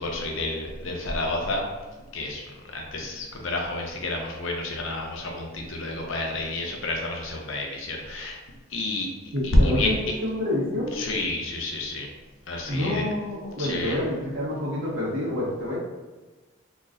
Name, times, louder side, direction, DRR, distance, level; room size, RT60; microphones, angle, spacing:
voice 1, 0.0-1.6 2.1-8.4 8.7-9.1 9.4-9.9 10.9-12.1 12.5-13.0 13.6-14.0, left 1 dB, 70° left, 1 dB, 0.7 m, -29 dB
voice 2, 9.3-10.9 12.7-15.8, left 1 dB, 60° right, -7 dB, 1.2 m, -27 dB
3.9 x 3.0 x 2.6 m, 1.2 s
head